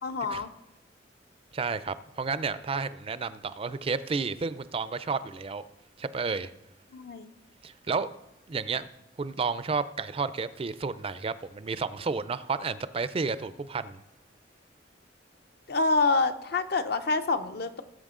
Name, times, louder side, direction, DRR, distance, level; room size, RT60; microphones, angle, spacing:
voice 1, 0.0-0.5 6.9-7.3 15.7-17.8, left 3 dB, 60° left, 10 dB, 0.7 m, -27 dB
voice 2, 1.5-5.6 6.0-6.5 7.6-8.1 8.5-8.9 9.2-14.0, right 4 dB, 30° right, 14 dB, 0.4 m, -31 dB
18.5 x 7.7 x 3.8 m, 0.89 s
head